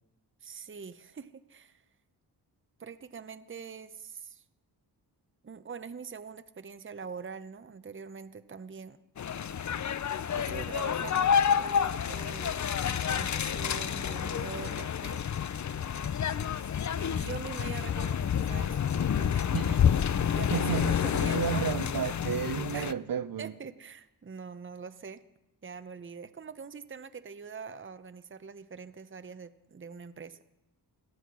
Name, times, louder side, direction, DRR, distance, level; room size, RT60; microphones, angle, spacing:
voice 1, 0.4-1.8 2.8-4.4 5.4-9.0 10.3-15.2 16.9-19.5 20.3-21.7 22.7-22.9 23.4-25.2 25.6-30.4, right 5 dB, 30° right, 0.9 m, -43 dB
sound 1, 9.2-22.9, left 8 dB, 45° left, 0.7 m, -29 dB
voice 2, 20.5-23.5, right 8 dB, 55° right, 1.0 m, -33 dB
18.0 x 13.0 x 6.2 m
cardioid pair, 60°, 42 cm